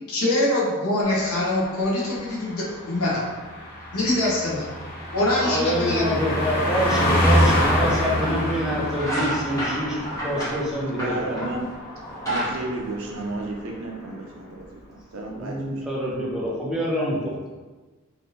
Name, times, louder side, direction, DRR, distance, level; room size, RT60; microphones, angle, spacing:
voice 1, 0.1-3.2 3.9-4.7 5.1-6.1, left 1 dB, 75° left, -5 dB, 0.8 m, -24 dB
Car passing by, 1.1-13.1 13.4-13.6, equal, 45° left, 0.8 m, -27 dB
voice 2, 5.4-11.5 15.3-17.3, equal, 5° right, -6 dB, 0.5 m, -26 dB
sound 1, 8.3-8.6 8.9-11.6 12.0-13.7, equal, 15° left, 1.2 m, -29 dB
voice 3, 10.9-11.6 12.3-15.8, right 2 dB, 60° right, 0 dB, 0.5 m, -33 dB
3.1 x 2.6 x 2.7 m, 1.3 s
head